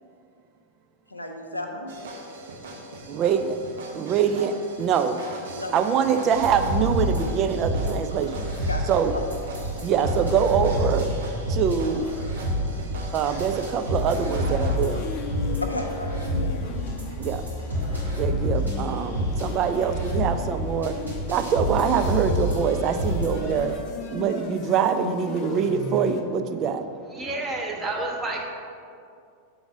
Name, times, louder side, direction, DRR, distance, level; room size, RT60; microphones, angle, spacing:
voice 1, 1.1-1.9 5.5-5.7 8.6-9.2 10.8-11.3 15.6-17.0, left 1 dB, 85° left, 3 dB, 0.7 m, -34 dB
sound 1, 1.9-14.8, right 2 dB, 60° right, 1.0 m, -40 dB
voice 2, 3.1-3.6 3.9-5.2 5.7-8.5 8.9-9.1 9.8-11.1 11.5-12.1 13.1-15.0 17.2-17.4 18.2-21.0 21.3-23.7 24.1-26.9, right 7 dB, 35° right, 8 dB, 0.4 m, -24 dB
sound 2, 6.4-23.7, equal, 85° right, 1.7 m, -28 dB
sound 3, 14.4-26.2, left 3 dB, 35° left, 0.6 m, -36 dB
voice 3, 27.1-28.4, right 2 dB, 20° right, -1 dB, 0.9 m, -29 dB
7.0 x 3.9 x 5.8 m, 2.4 s
figure-of-eight pair, 90°, 0 cm